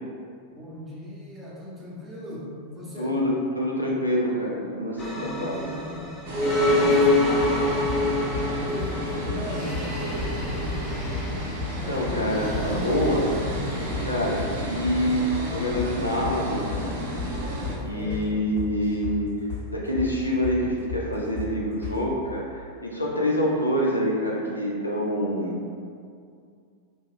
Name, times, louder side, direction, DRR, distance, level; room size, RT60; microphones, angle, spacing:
voice 1, 0.5-3.2 5.1-7.7 8.6-10.1 11.8-12.4 17.7-18.2, equal, 10° right, -8 dB, 0.8 m, -39 dB
voice 2, 3.0-5.6 11.9-13.3 14.1-17.0 17.8-19.3 19.7-25.6, equal, 85° left, -3 dB, 0.4 m, -26 dB
sound 1, 5.0-17.8, left 2 dB, 20° left, 0.4 m, -28 dB
sound 2, 6.3-17.8, right 1 dB, 55° right, 0.4 m, -32 dB
sound 3, 7.4-8.0 8.3-8.5 8.8-9.0 9.3-9.4 9.7-9.9 10.2-10.4 10.7-10.8 11.1-11.8 12.1-12.2 12.5-12.7 13.0-13.1 13.4-13.6 13.9-14.1 14.4-14.5 14.8-15.5 15.8-15.9 16.2-16.4 16.7-16.9 17.2-17.3 17.6-17.8 18.1-18.3 18.6-19.2 19.5-19.7 20.0-20.1 20.4-20.6 20.9-21.1 21.4-21.5 21.8-22.0, left 6 dB, 50° left, 1.0 m, -33 dB
2.3 x 2.1 x 3.4 m, 2.3 s
figure-of-eight pair, 90°, 0 cm